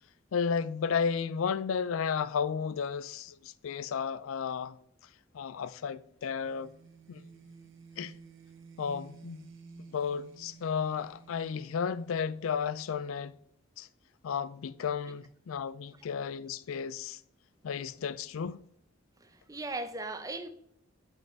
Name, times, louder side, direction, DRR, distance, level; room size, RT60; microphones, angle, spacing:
voice 1, 0.3-4.8 5.3-6.7 7.1-7.2 8.0-8.1 8.8-9.5 9.9-13.3 13.8-13.9 14.2-17.2 17.6-18.6, left 6 dB, 90° left, 0.4 m, -33 dB
sound 1, 6.3-13.0, right 4 dB, 65° right, 0.9 m, -54 dB
voice 2, 19.2-20.5, right 2 dB, 15° right, 0.6 m, -38 dB
6.0 x 5.5 x 5.3 m
head